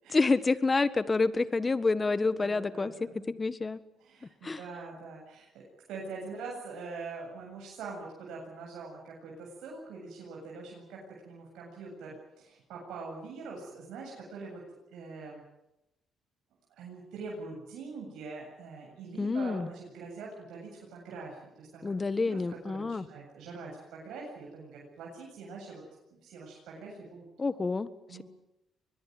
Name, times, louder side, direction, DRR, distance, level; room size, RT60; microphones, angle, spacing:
voice 1, 0.1-2.9 3.3-3.8 4.4-4.6 19.2-19.7 21.8-23.1 27.4-27.9, left 3 dB, 25° left, 14 dB, 1.5 m, -28 dB
voice 2, 2.0-3.2 4.0-11.0 11.3-14.6 14.9-15.4 16.7-21.8 22.1-25.8 26.1-27.3 28.1-28.2, right 4 dB, 85° right, -2 dB, 7.8 m, -44 dB
23.5 x 21.5 x 9.5 m, 0.90 s
cardioid pair, 90°, 0 cm